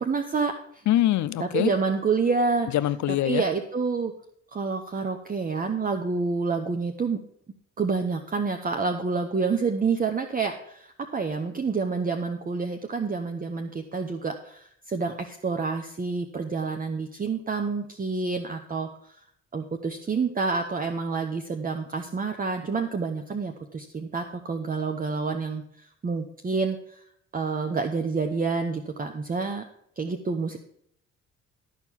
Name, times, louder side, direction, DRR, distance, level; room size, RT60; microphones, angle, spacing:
voice 1, 0.0-0.8 1.4-2.7 3.1-4.1 4.5-7.2 7.8-19.2 19.5-27.0 27.3-29.7 30.0-30.6, right 4 dB, 30° right, 0.8 m, -28 dB
voice 2, 0.9-1.7 2.7-3.4, left 13 dB, 70° left, 0.6 m, -23 dB
12.5 x 4.5 x 7.3 m
cardioid pair, 90°, 30 cm